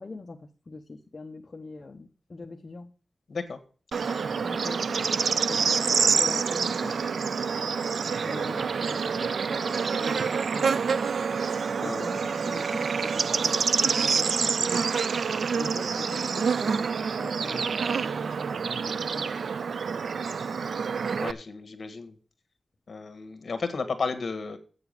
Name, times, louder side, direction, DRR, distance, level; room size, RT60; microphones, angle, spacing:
voice 1, 0.0-2.9 4.4-7.0 8.2-11.1 11.8-14.8 15.6-17.9 18.8-19.4, left 3 dB, 45° left, 1 dB, 0.9 m, -42 dB
Bird / Insect, 3.9-21.3, right 5 dB, 85° right, 0.4 m, -27 dB
voice 2, 21.2-22.2 22.9-24.6, left 4 dB, 65° left, 9 dB, 1.5 m, -33 dB
8.1 x 7.0 x 6.6 m, 0.41 s
wide cardioid pair, 105°, 0 cm